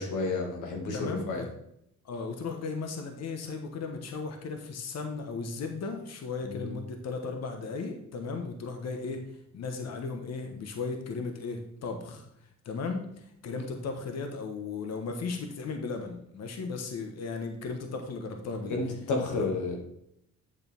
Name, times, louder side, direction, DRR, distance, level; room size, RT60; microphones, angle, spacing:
voice 1, 0.0-1.5 6.4-6.7 18.7-19.8, left 3 dB, 80° left, 2 dB, 2.1 m, -31 dB
voice 2, 0.9-1.5 2.0-9.2 9.5-12.3 12.6-18.8 19.3-19.5, left 4 dB, 60° left, 5 dB, 1.3 m, -36 dB
8.5 x 6.7 x 3.5 m, 0.75 s
cardioid pair, 90°, 30 cm